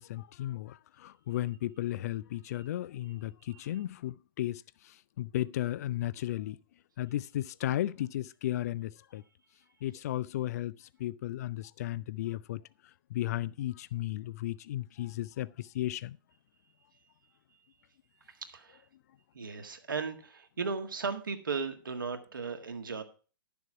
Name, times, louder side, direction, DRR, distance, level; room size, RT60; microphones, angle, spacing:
voice 1, 0.0-4.6 5.2-6.6 7.0-9.2 9.8-10.7 11.0-12.6 13.1-16.2, left 13 dB, 45° left, 0.4 m, -34 dB
voice 2, 18.3-18.8 19.3-23.0, right 5 dB, 70° right, 1.7 m, -36 dB
12.0 x 7.0 x 4.6 m
figure-of-eight pair, 110°, 11 cm